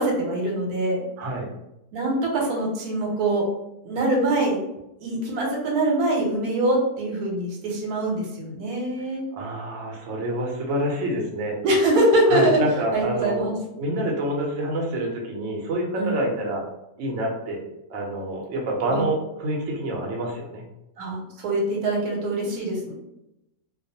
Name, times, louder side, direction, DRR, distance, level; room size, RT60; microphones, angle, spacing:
voice 1, 0.0-1.0 1.9-3.4 3.8-4.6 5.0-9.2 11.6-12.6 12.9-13.5 13.9-14.0 16.0-16.2 18.9-19.0 21.0-22.9, right 1 dB, 85° right, -1 dB, 1.2 m, -23 dB
voice 2, 1.2-1.5 9.3-11.6 12.3-13.5 13.8-16.6 17.0-20.6, right 1 dB, 60° right, -1 dB, 0.9 m, -27 dB
2.4 x 2.2 x 2.6 m, 0.87 s
omnidirectional pair, 1.6 m